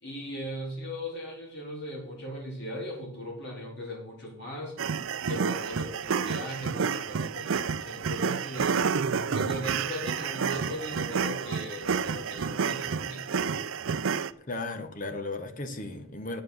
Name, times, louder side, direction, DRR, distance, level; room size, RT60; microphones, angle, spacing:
voice 1, 0.0-4.7 5.3-8.8 9.3-13.5, left 1 dB, 55° left, -1 dB, 3.7 m, -38 dB
sound 1, 4.8-14.3, right 6 dB, 65° right, 0.5 m, -30 dB
voice 2, 14.5-16.4, left 2 dB, 40° left, 8 dB, 1.2 m, -35 dB
9.3 x 7.6 x 6.5 m, 0.64 s
head